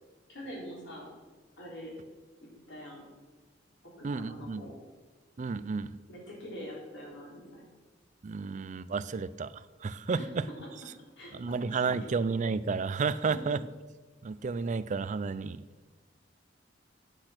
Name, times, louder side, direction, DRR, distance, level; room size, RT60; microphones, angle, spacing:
voice 1, 0.3-1.1 1.6-1.9 2.7-3.1 4.0-4.7 6.1-7.6 10.1-10.3 10.6-10.7 11.2-12.1 13.5-13.6, equal, 65° left, -3 dB, 4.0 m, -44 dB
voice 2, 4.0-4.6 5.4-5.9 8.2-10.2 11.3-13.6 14.2-15.6, right 4 dB, 40° right, 15 dB, 0.4 m, -32 dB
8.8 x 8.0 x 5.9 m, 1.3 s
head